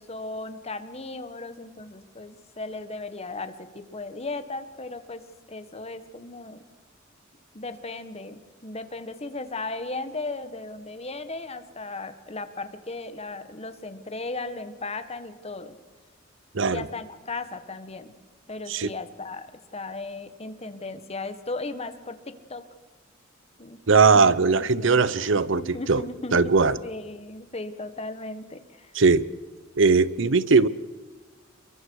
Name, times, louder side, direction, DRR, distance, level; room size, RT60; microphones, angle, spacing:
voice 1, 0.0-6.6 7.5-15.8 16.7-18.1 18.5-19.5 19.7-22.6 23.6-24.3 24.8-28.9, left 3 dB, 30° left, 1.6 m, -36 dB
voice 2, 23.9-26.0 26.3-26.8 28.9-29.3 29.8-30.7, right 4 dB, 65° right, 0.8 m, -19 dB
29.5 x 23.0 x 4.8 m
head